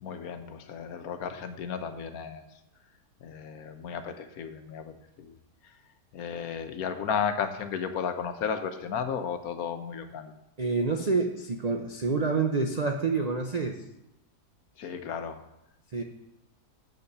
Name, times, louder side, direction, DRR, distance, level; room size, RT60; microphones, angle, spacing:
voice 1, 0.0-2.4 3.2-5.4 5.6-5.7 6.1-10.3 14.8-15.4, left 7 dB, 65° left, 8 dB, 1.1 m, -34 dB
voice 2, 10.6-13.8 15.9-16.0, right 4 dB, 90° right, 3 dB, 0.3 m, -27 dB
7.9 x 5.6 x 6.6 m, 0.89 s
omnidirectional pair, 1.8 m